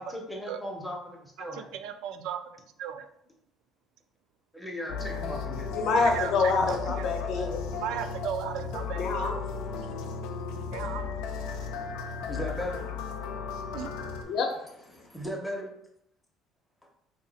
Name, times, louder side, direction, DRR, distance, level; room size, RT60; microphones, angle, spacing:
voice 1, 0.0-1.7 4.5-5.7 12.3-12.8 14.9-15.7, equal, 5° left, 0 dB, 0.6 m, -37 dB
voice 2, 1.4-3.1 6.0-6.3 6.7-7.1 7.7-9.3 10.7-11.1 13.7-13.9, right 9 dB, 70° right, 9 dB, 0.3 m, -36 dB
sound 1, 4.9-14.2, left 5 dB, 90° left, 0.4 m, -35 dB
voice 3, 5.7-7.7 8.9-9.7 10.2-10.3 14.2-15.1, left 4 dB, 55° left, 4 dB, 0.6 m, -28 dB
2.8 x 2.4 x 4.0 m, 0.76 s
cardioid pair, 150°, 0 cm